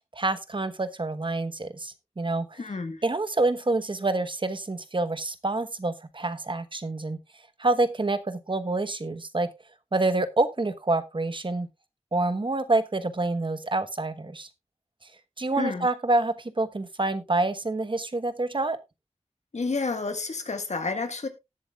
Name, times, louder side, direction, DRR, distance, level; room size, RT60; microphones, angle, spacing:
voice 1, 0.1-2.6 3.0-7.2 7.6-9.5 9.9-11.7 12.1-14.5 15.4-18.8, right 2 dB, 45° right, 1.1 m, -27 dB
voice 2, 2.6-3.0 15.6-15.9 19.5-21.3, left 3 dB, 90° left, 1.5 m, -30 dB
18.5 x 7.7 x 2.3 m
wide cardioid pair, 70°, 11 cm